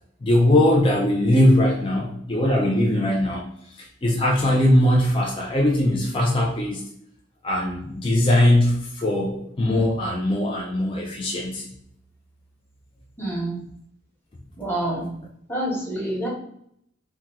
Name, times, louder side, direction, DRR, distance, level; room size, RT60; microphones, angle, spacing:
voice 1, 0.2-3.4 4.0-6.8 7.4-11.6, left 1 dB, 25° left, -1 dB, 0.4 m, -20 dB
voice 2, 13.2-13.6 14.6-15.1 15.5-16.3, right 1 dB, 10° left, -4 dB, 1.0 m, -27 dB
2.9 x 2.2 x 3.5 m, 0.71 s
head